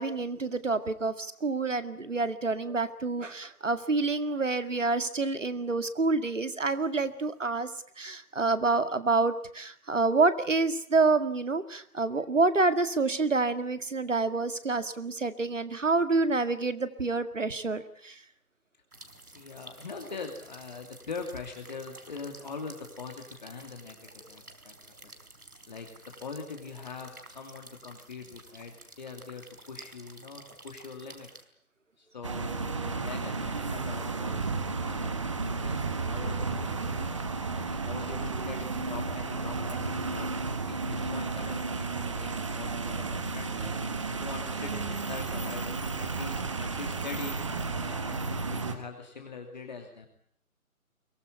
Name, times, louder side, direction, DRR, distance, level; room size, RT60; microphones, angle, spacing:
voice 1, 0.0-7.7 8.0-18.2, right 3 dB, 55° right, 11 dB, 2.1 m, -28 dB
sound 1, 18.9-31.4, right 2 dB, 85° right, 4.3 m, -51 dB
voice 2, 19.3-24.8 25.0-25.1 25.7-25.9 26.2-31.3 32.0-35.3 35.5-37.3 37.5-43.7 44.1-45.7 46.0-47.4 47.8-50.1, left 4 dB, 30° left, 4 dB, 2.7 m, -43 dB
sound 2, 32.2-48.7, right 4 dB, 20° right, 1.4 m, -33 dB
23.0 x 18.5 x 9.7 m, 0.63 s
figure-of-eight pair, 155°, 44 cm